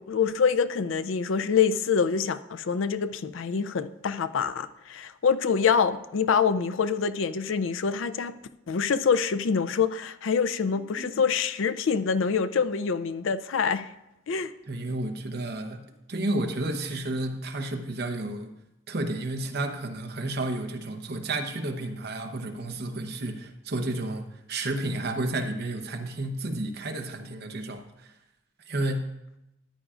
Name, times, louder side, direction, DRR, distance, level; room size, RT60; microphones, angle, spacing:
voice 1, 0.0-8.4 8.7-13.9 14.3-14.5, left 6 dB, 70° left, 0.4 m, -25 dB
voice 2, 10.7-11.2 14.7-15.8 16.1-18.5 18.9-28.1 28.7-29.1, right 2 dB, 50° right, 0.9 m, -31 dB
14.0 x 9.9 x 2.5 m
head